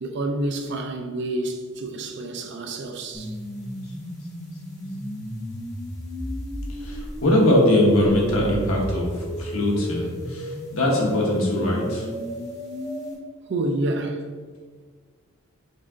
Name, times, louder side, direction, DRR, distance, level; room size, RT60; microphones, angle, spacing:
voice 1, 0.0-3.3 13.5-14.2, right 2 dB, 55° right, 0.5 m, -28 dB
sound 1, 3.1-13.1, equal, 15° left, 0.8 m, -34 dB
voice 2, 6.8-12.1, left 1 dB, 80° left, 1.2 m, -21 dB
5.4 x 3.7 x 2.5 m
head